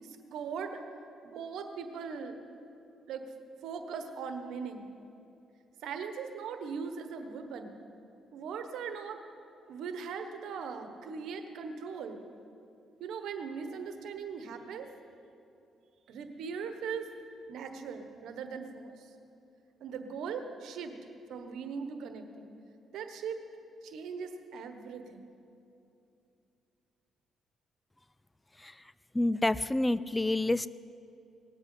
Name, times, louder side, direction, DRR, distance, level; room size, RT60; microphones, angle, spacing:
voice 1, 0.0-0.8 1.2-2.3 3.1-3.3 3.6-4.9 5.8-7.8 8.3-9.2 9.7-12.2 13.0-14.9 16.1-17.1 17.5-18.9 19.8-21.0 21.3-22.5 22.9-23.4 23.8-25.2, right 6 dB, 80° right, 7 dB, 1.3 m, -39 dB
voice 2, 29.1-30.7, left 2 dB, 15° left, 17 dB, 0.3 m, -28 dB
19.0 x 8.1 x 7.8 m, 2.7 s
cardioid pair, 90°, 0 cm